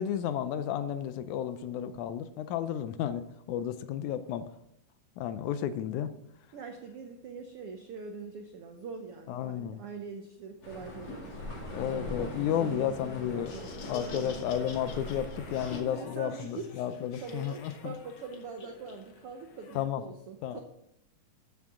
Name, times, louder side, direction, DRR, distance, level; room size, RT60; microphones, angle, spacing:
voice 1, 0.0-4.5 5.2-6.1 9.3-9.8 11.7-13.5 13.9-17.9 19.8-20.0 20.4-20.6, left 10 dB, 80° left, 12 dB, 1.9 m, -32 dB
voice 2, 6.5-12.1 12.6-12.9 13.2-14.4 15.9-16.7 17.2-20.6, right 5 dB, 75° right, 4 dB, 1.3 m, -43 dB
sound 1, 10.6-15.8, left 1 dB, 45° left, 3.4 m, -41 dB
Laughter, 13.3-19.8, left 4 dB, 60° left, 1.4 m, -48 dB
13.5 x 7.4 x 3.7 m, 0.75 s
omnidirectional pair, 3.7 m